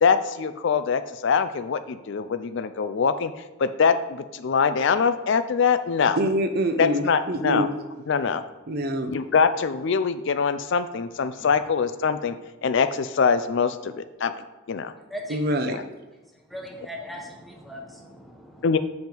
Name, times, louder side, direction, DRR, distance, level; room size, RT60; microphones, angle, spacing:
voice 1, 0.0-3.3 3.6-6.2 6.8-7.7 8.1-8.4 9.1-12.4 12.6-14.3 14.7-14.9 15.7-15.8 18.6-18.8, left 6 dB, 55° left, 11 dB, 0.4 m, -23 dB
voice 2, 6.2-7.7 8.7-9.2 15.3-15.8, right 1 dB, 45° right, 8 dB, 0.6 m, -25 dB
voice 3, 15.1-15.6 16.5-18.7, equal, ahead, 0 dB, 0.9 m, -39 dB
7.8 x 5.3 x 4.4 m, 1.2 s
head